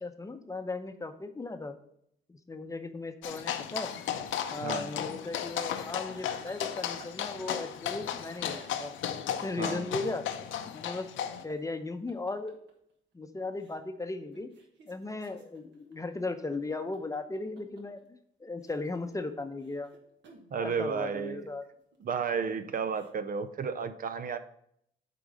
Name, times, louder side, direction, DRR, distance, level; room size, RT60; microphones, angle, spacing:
voice 1, 0.0-1.8 2.3-3.9 4.5-8.9 9.4-10.2 10.7-11.1 11.4-12.5 13.1-14.5 14.9-18.0 18.4-19.9 20.6-21.6, left 3 dB, 15° left, 8 dB, 0.7 m, -37 dB
sound 1, 3.2-11.4, left 9 dB, 75° left, 0.7 m, -35 dB
sound 2, 5.9-7.6 8.5-9.1 9.4-9.5 11.0-13.1 13.6-13.8 14.2-18.0 18.5-20.5 21.6-23.1, right 4 dB, 65° right, 1.5 m, -56 dB
voice 2, 20.5-21.5 22.0-24.4, right 6 dB, 45° right, 11 dB, 0.5 m, -32 dB
8.4 x 3.8 x 5.2 m, 0.72 s
cardioid pair, 90°, 20 cm